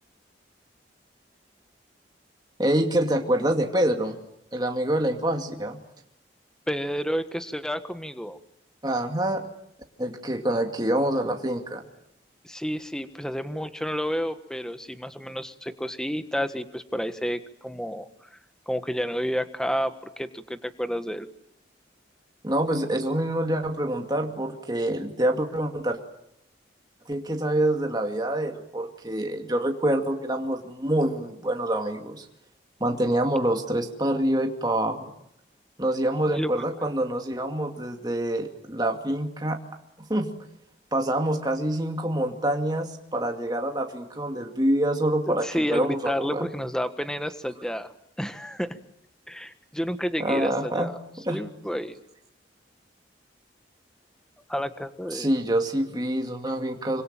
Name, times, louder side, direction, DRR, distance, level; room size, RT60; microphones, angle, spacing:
voice 1, 2.6-4.2 4.5-5.8 8.8-9.4 10.0-11.9 22.4-26.0 27.1-32.3 32.8-35.1 35.8-39.6 40.1-40.3 40.9-46.5 50.2-50.9 51.2-51.4 55.1-57.0, right 1 dB, 20° right, 3 dB, 2.4 m, -26 dB
voice 2, 6.7-8.4 12.4-18.4 18.7-21.3 36.3-36.6 45.3-48.8 49.3-51.0 51.3-52.0 54.5-55.3, equal, 5° left, 9 dB, 1.5 m, -30 dB
26.0 x 25.0 x 9.0 m, 0.77 s
head